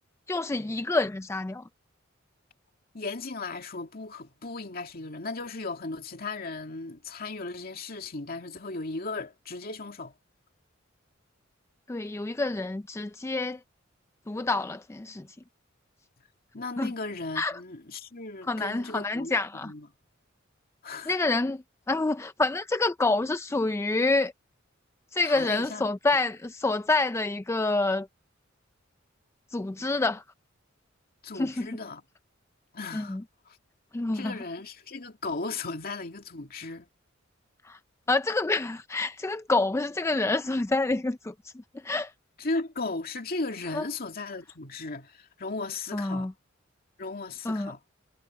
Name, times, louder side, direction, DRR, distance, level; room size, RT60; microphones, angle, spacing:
voice 1, 0.3-1.6 11.9-13.6 14.3-15.2 16.8-16.9 17.4-17.6 18.4-19.7 21.1-24.3 25.1-28.1 29.5-30.2 31.3-31.7 32.9-33.2 33.9-34.4 37.6-37.8 38.1-42.1 43.7-43.8 45.9-46.3 47.4-47.7, left 2 dB, 15° left, 0.4 m, -27 dB
voice 2, 2.9-10.1 16.5-19.4 19.6-19.9 20.8-21.1 25.2-25.9 31.2-32.0 32.7-33.2 33.5-33.6 34.1-36.9 42.4-46.3 47.0-47.8, left 3 dB, 50° left, 2.3 m, -36 dB
head